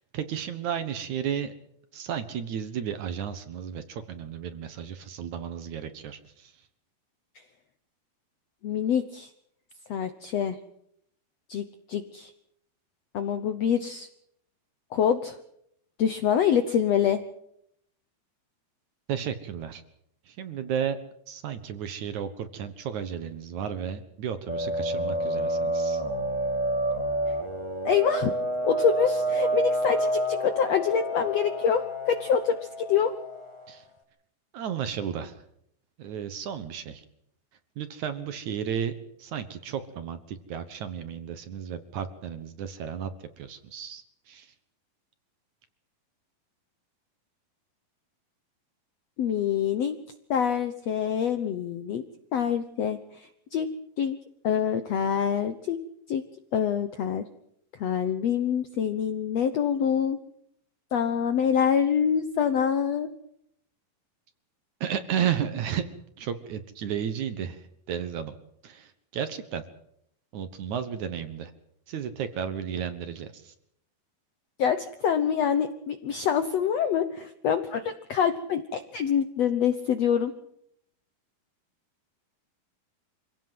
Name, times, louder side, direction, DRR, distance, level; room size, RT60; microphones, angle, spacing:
voice 1, 0.0-1.5 1.9-6.5 19.1-19.8 20.3-21.0 21.3-26.0 33.7-33.8 34.5-35.4 36.0-37.0 37.8-38.9 39.2-43.1 43.4-44.5 64.8-65.8 66.2-68.4 68.6-69.6 70.3-71.5 71.9-73.5, right 8 dB, 60° right, 11 dB, 2.3 m, -33 dB
voice 2, 8.6-9.3 9.9-10.6 11.5-12.3 13.1-14.1 14.9-15.4 16.0-17.2 27.8-28.3 28.6-33.1 49.2-50.0 50.3-52.0 52.3-53.7 54.0-54.2 54.4-55.8 56.1-56.2 56.5-57.2 57.8-60.2 60.9-63.1 74.6-80.3, left 8 dB, 70° left, 10 dB, 1.6 m, -26 dB
sound 1, 24.5-33.7, right 1 dB, 15° left, 1.2 m, -29 dB
25.5 x 17.0 x 7.8 m, 0.72 s
omnidirectional pair, 4.3 m